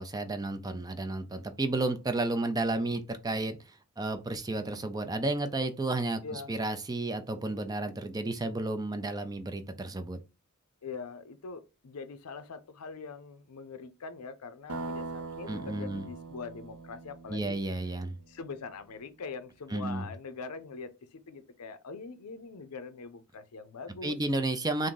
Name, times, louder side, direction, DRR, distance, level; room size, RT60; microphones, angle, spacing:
voice 1, 0.0-10.2 15.5-16.0 17.3-18.2 19.7-20.1 24.0-24.9, right 2 dB, 15° right, 0.4 m, -32 dB
voice 2, 6.2-6.6 10.8-17.6 18.3-24.2, left 4 dB, 90° left, 0.6 m, -43 dB
sound 1, 14.7-18.5, right 3 dB, 80° right, 0.7 m, -42 dB
3.6 x 2.6 x 3.8 m
head